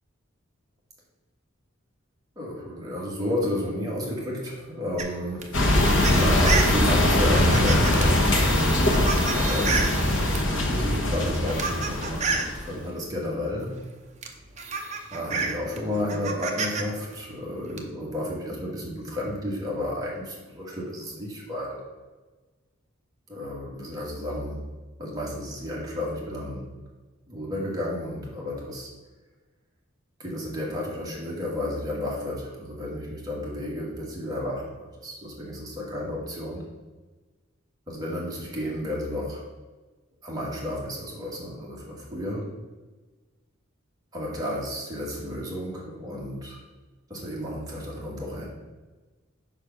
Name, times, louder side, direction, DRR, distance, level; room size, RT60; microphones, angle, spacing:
voice 1, 2.3-5.4 6.1-9.0 9.3-13.7 15.1-21.8 23.3-24.6 25.0-26.7 27.3-28.9 30.2-34.7 35.0-36.7 37.9-39.4 40.2-42.5 44.1-46.6 47.1-48.5, left 1 dB, 20° right, -4 dB, 1.6 m, -32 dB
sound 1, 5.0-10.5 11.2-12.5 13.8-13.9 14.2-16.8 17.1-17.8, right 5 dB, 35° right, 0.7 m, -31 dB
sound 2, 5.5-12.6, left 1 dB, 65° left, 1.1 m, -22 dB
5.1 x 4.8 x 5.8 m, 1.3 s
head